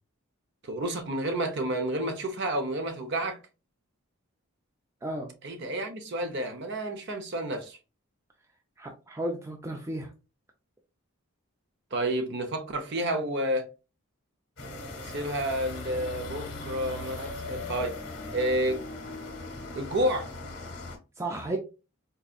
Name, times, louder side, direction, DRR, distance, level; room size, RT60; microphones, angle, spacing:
voice 1, 0.6-3.4 5.4-7.8 11.9-13.7 15.0-18.0 18.3-18.8 19.7-20.3, right 1 dB, 50° right, 0.6 m, -30 dB
voice 2, 5.0-5.3 8.8-10.1 21.2-21.6, right 1 dB, 10° right, 0.3 m, -33 dB
sound 1, 14.6-21.0, left 3 dB, 50° left, 0.9 m, -39 dB
4.0 x 2.6 x 2.4 m
head